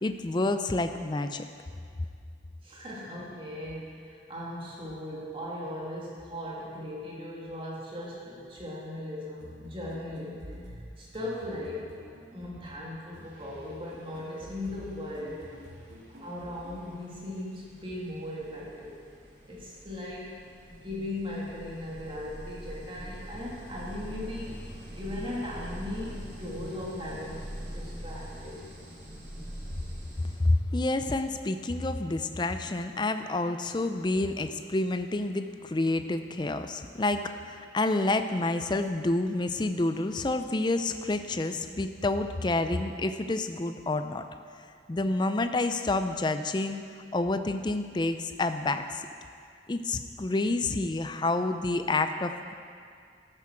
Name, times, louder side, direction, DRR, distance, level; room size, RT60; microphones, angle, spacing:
voice 1, 0.0-1.4 30.4-44.2 44.9-46.8 47.1-49.1 49.7-52.5, left 2 dB, 25° left, 8 dB, 0.4 m, -28 dB
voice 2, 2.6-10.4 11.0-12.0 12.3-15.5 16.2-18.9 19.4-20.4 20.7-28.6, left 1 dB, 30° right, -5 dB, 2.3 m, -38 dB
sound 1, 9.4-17.0, left 1 dB, 90° right, 2.1 m, -48 dB
sound 2, 12.6-12.8 13.1-30.4, equal, 70° right, 2.8 m, -44 dB
12.0 x 9.0 x 6.1 m, 2.2 s
head